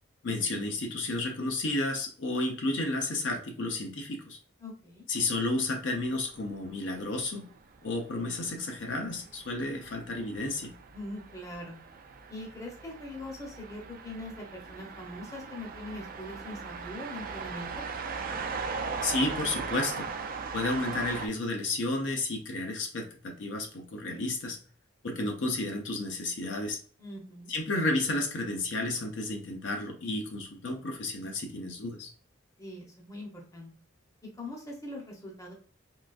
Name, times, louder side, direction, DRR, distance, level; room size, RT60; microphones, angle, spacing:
voice 1, 0.2-4.4 5.1-7.5 7.8-10.7 19.0-20.1 20.5-24.6 25.0-26.8 27.5-32.1, left 2 dB, 65° left, 3 dB, 0.6 m, -32 dB
voice 2, 4.6-5.0 10.9-11.8 12.3-17.8 27.0-27.5 32.6-33.7 34.4-35.5, left 1 dB, 15° left, -1 dB, 0.7 m, -42 dB
sound 1, 5.2-21.3, right 5 dB, 45° right, 0.4 m, -39 dB
3.8 x 2.4 x 2.4 m, 0.43 s
head